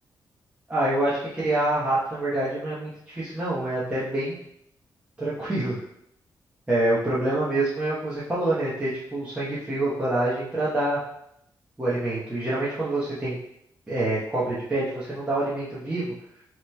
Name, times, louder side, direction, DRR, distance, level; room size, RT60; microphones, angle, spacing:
voice 1, 0.7-4.4 5.2-5.8 6.7-11.0 11.8-13.4 13.9-16.1, right 1 dB, 15° right, -10 dB, 0.9 m, -26 dB
7.2 x 3.1 x 2.2 m, 0.76 s
wide cardioid pair, 130°, 8 cm